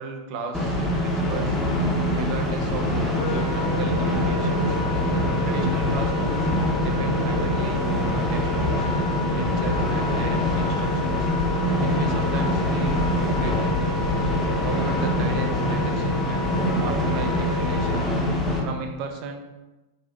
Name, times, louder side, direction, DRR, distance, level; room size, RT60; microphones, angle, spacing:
voice 1, 0.0-1.6 1.9-4.8 5.2-6.5 6.8-8.9 9.3-11.3 11.8-13.8 14.6-18.1 18.6-19.4, right 4 dB, 40° right, 3 dB, 0.4 m, -35 dB
sound 1, 0.5-18.6, left 1 dB, 10° left, 0.6 m, -24 dB
Wind instrument woodwind instrument, 3.1-18.0, left 3 dB, 80° left, 0.6 m, -32 dB
2.6 x 2.2 x 3.4 m, 1.1 s
figure-of-eight pair, 90°, 0 cm